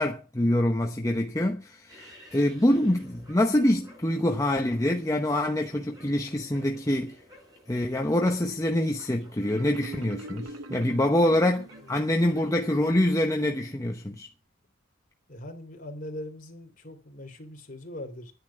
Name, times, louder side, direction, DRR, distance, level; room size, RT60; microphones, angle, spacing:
voice 1, 0.0-7.2 7.7-14.3, left 1 dB, 15° left, 0.9 m, -25 dB
sound 1, 1.9-13.7, equal, 20° right, 6.8 m, -54 dB
Marimba xylophone, 9.4-12.2, right 1 dB, 75° right, 1.1 m, -43 dB
voice 2, 11.7-12.1 15.3-18.3, left 1 dB, 40° left, 3.4 m, -42 dB
11.0 x 9.8 x 5.8 m
head